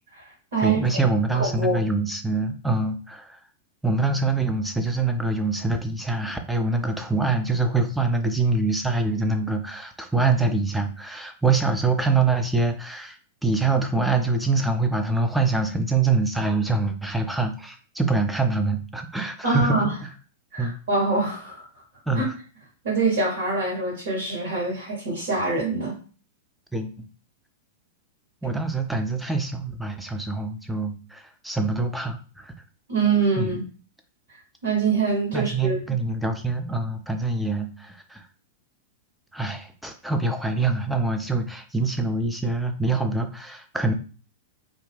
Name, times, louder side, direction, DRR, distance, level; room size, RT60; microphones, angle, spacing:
voice 1, 0.6-3.4 3.8-19.9 20.6-20.7 22.1-22.3 26.7-27.0 28.4-32.5 33.4-33.5 35.3-38.2 39.3-43.9, right 3 dB, 5° right, 5 dB, 0.4 m, -25 dB
voice 2, 1.3-1.8 19.4-19.9 20.5-21.6 22.1-22.2 22.8-26.0 32.9-33.7 34.6-35.8, right 3 dB, 55° right, -6 dB, 1.3 m, -24 dB
2.5 x 2.1 x 3.4 m, 0.38 s
figure-of-eight pair, 95°, 0 cm